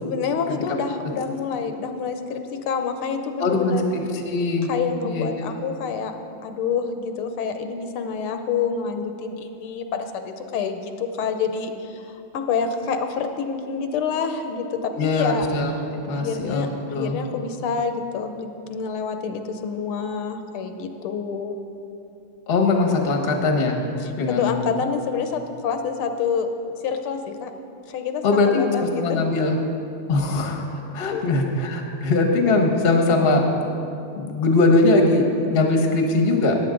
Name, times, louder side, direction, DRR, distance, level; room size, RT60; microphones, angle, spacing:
voice 1, 0.0-4.0 4.6-6.2 6.4-15.5 16.1-21.5 24.0-26.5 26.8-27.5 27.9-29.2 31.1-31.2, left 6 dB, 85° left, 7 dB, 1.7 m, -27 dB
voice 2, 3.4-4.7 5.0-5.4 14.9-15.7 16.1-17.2 22.5-23.8 24.2-24.7 28.2-29.6 30.1-33.5 33.7-33.8 34.2-36.6, left 3 dB, 40° left, 3 dB, 0.9 m, -21 dB
14.5 x 9.6 x 3.8 m, 2.7 s
omnidirectional pair, 2.3 m